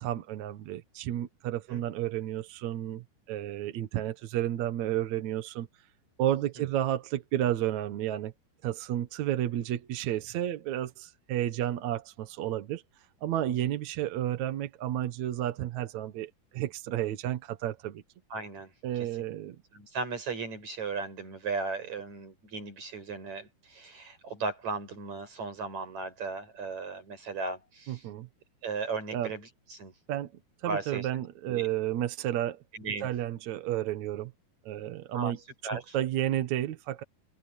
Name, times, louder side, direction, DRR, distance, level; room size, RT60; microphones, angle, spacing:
voice 1, 0.0-5.7 6.2-8.3 8.6-12.8 13.2-18.0 18.8-19.6 27.9-28.3 29.1-29.3 30.1-30.3 30.6-32.6 33.0-34.3 34.7-35.4 35.7-37.0, right 12 dB, 65° right, 1.9 m, -31 dB
voice 2, 18.3-19.1 19.7-28.1 28.6-29.9 30.6-31.1 31.5-31.7 32.7-33.1 35.1-35.3 35.6-36.0, right 4 dB, 45° right, 7.7 m, -36 dB
open air
omnidirectional pair, 4.7 m